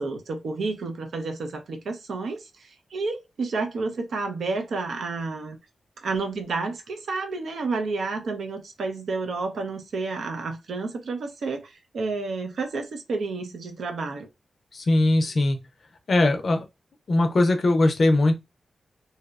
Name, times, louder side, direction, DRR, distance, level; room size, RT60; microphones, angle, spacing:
voice 1, 0.0-5.6 6.0-14.3, right 3 dB, 80° right, 0.5 m, -30 dB
voice 2, 14.7-15.6 16.1-16.6 17.1-18.3, left 2 dB, 55° left, 0.4 m, -20 dB
2.7 x 2.0 x 2.3 m
wide cardioid pair, 115°, 0 cm